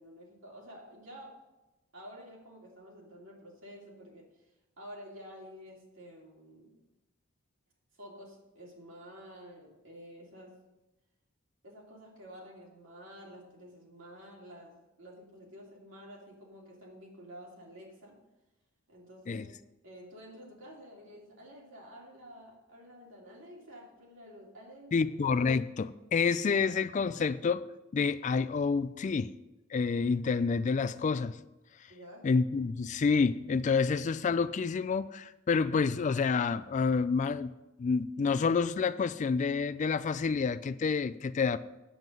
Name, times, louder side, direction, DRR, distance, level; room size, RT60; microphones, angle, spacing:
voice 1, 0.0-1.4 1.9-4.3 4.8-6.8 8.0-10.6 11.6-18.1 18.9-19.5 19.8-25.1 31.9-32.3, equal, 65° right, -2 dB, 2.9 m, -50 dB
voice 2, 24.9-27.6 27.9-29.3 29.7-31.4 32.2-37.5 37.8-41.6, left 5 dB, 35° left, 15 dB, 0.3 m, -28 dB
9.1 x 8.1 x 5.3 m, 0.99 s
head